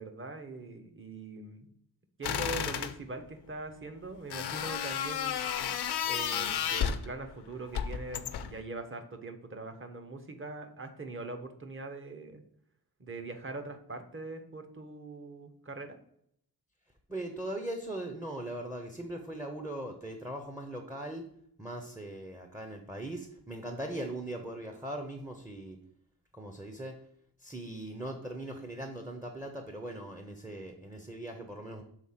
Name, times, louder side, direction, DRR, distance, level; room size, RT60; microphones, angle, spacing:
voice 1, 0.0-1.7 2.2-5.4 6.0-12.4 13.0-16.0, right 3 dB, 30° right, 6 dB, 0.9 m, -42 dB
sound 1, 2.2-2.9 4.3-7.1 7.7-8.6, left 8 dB, 90° left, 0.6 m, -32 dB
voice 2, 17.1-21.3 21.6-25.8 26.3-27.0 27.4-31.8, right 1 dB, 10° right, 4 dB, 0.6 m, -40 dB
6.4 x 3.8 x 5.6 m, 0.69 s
wide cardioid pair, 155°, 39 cm